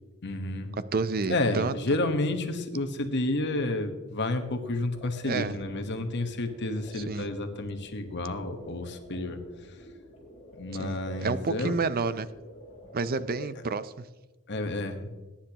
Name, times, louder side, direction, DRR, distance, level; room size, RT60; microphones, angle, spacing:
voice 1, 0.2-0.7 1.3-9.4 10.5-11.7 14.5-15.1, left 2 dB, 55° left, 7 dB, 1.3 m, -30 dB
voice 2, 0.9-1.7 5.3-5.6 7.0-7.3 10.8-12.3 12.9-14.0, right 4 dB, 45° right, 14 dB, 0.6 m, -29 dB
sound 1, 4.9-13.2, equal, 30° left, 4.2 m, -48 dB
21.5 x 10.0 x 3.0 m, 1.1 s
head